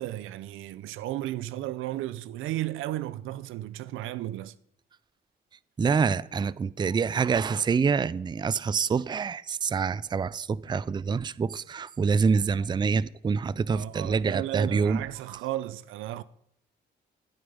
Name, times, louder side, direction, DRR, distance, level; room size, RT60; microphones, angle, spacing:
voice 1, 0.0-4.5 13.7-16.2, right 15 dB, 90° right, 0.6 m, -34 dB
voice 2, 5.8-15.0 15.3-15.4, right 5 dB, 20° right, 0.4 m, -26 dB
13.0 x 9.0 x 5.5 m
cardioid pair, 90°, 20 cm